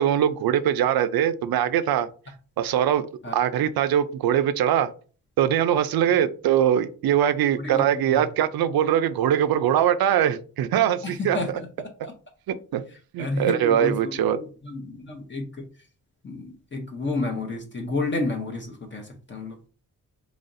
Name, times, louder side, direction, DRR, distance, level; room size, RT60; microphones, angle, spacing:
voice 1, 0.0-2.1 2.6-3.0 3.3-4.9 5.4-11.4 12.5-12.8 13.1-14.4, right 10 dB, 80° right, 13 dB, 0.5 m, -22 dB
voice 2, 7.6-8.3 11.0-11.7 12.0-12.1 13.2-15.6 16.2-19.6, left 2 dB, 30° left, 2 dB, 0.7 m, -31 dB
4.0 x 3.0 x 2.5 m, 0.38 s
wide cardioid pair, 110°, 36 cm